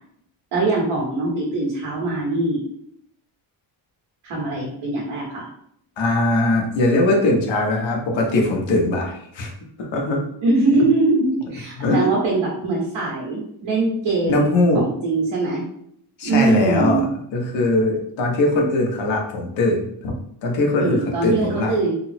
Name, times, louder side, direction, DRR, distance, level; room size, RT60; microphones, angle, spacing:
voice 1, 0.5-2.6 4.2-5.5 10.4-15.6 16.2-17.0 20.8-21.9, right 3 dB, 85° right, -5 dB, 1.2 m, -22 dB
voice 2, 6.0-9.5 9.8-10.2 10.8-10.9 11.7-12.2 14.3-14.8 16.2-17.1 17.3-20.2 20.4-21.7, left 2 dB, 80° left, 0 dB, 1.1 m, -20 dB
3.4 x 2.0 x 4.2 m, 0.69 s
cardioid pair, 175°, 45 cm